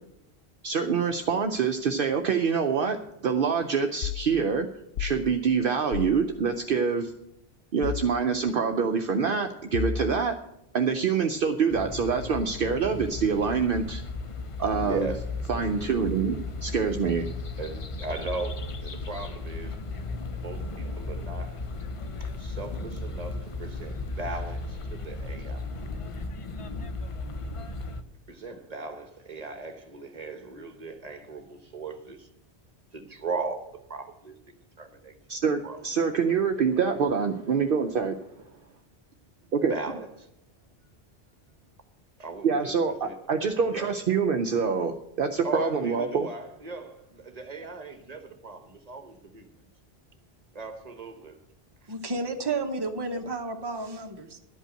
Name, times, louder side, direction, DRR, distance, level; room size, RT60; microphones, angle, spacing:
voice 1, 0.6-3.0 3.2-4.7 5.0-7.1 7.7-10.3 10.7-14.0 14.6-15.1 15.5-17.2 35.3-38.2 39.5-39.7 42.4-46.3, right 6 dB, 60° right, 0.8 m, -25 dB
sound 1, 4.0-4.3 5.0-5.2 5.9-6.2 7.8-8.1 9.7-10.3, left 7 dB, 70° left, 0.7 m, -31 dB
sound 2, 11.7-28.0, left 3 dB, 35° left, 0.7 m, -35 dB
voice 2, 14.8-15.2 17.6-19.8 20.4-21.6 22.2-25.7 28.3-32.3 32.9-34.3 34.8-35.2 35.6-35.8 39.7-40.3 42.2-42.7 43.0-43.2 43.7-43.9 45.4-49.6 50.5-51.4 51.8-51.9, right 3 dB, 40° right, 1.2 m, -38 dB
voice 3, 51.9-54.4, right 3 dB, 25° right, 1.0 m, -31 dB
11.5 x 5.5 x 8.7 m
omnidirectional pair, 1.1 m